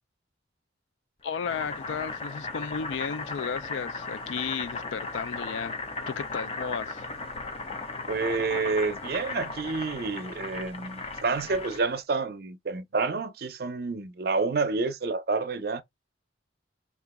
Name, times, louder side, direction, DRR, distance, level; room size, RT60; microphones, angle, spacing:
voice 1, 1.2-5.7 6.1-7.1, left 6 dB, 80° left, 0.4 m, -34 dB
Boiling, 1.3-12.0, left 3 dB, 30° left, 0.5 m, -36 dB
voice 2, 8.1-15.8, right 4 dB, 55° right, 0.5 m, -29 dB
3.0 x 2.4 x 3.6 m
head